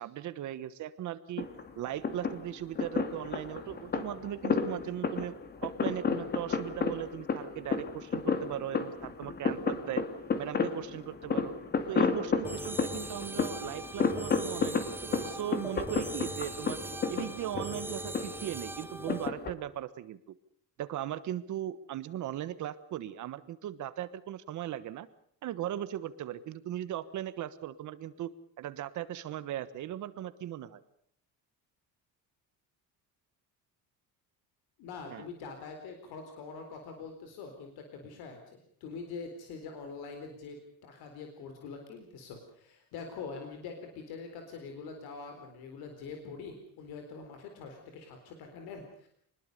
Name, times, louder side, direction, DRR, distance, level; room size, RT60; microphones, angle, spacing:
voice 1, 0.0-1.5 1.7-5.3 5.6-10.0 10.4-11.5 11.9-16.8 17.1-20.2 20.8-25.1 25.4-30.8 35.1-35.2, right 12 dB, 50° right, 14 dB, 1.3 m, -38 dB
sound 1, 1.4-19.5, left 5 dB, 25° left, 2.2 m, -33 dB
sound 2, 12.4-19.3, right 2 dB, 5° right, 1.0 m, -41 dB
voice 2, 34.8-49.1, left 4 dB, 80° left, 5 dB, 4.2 m, -44 dB
25.5 x 21.0 x 6.8 m, 0.65 s
cardioid pair, 180°, 37 cm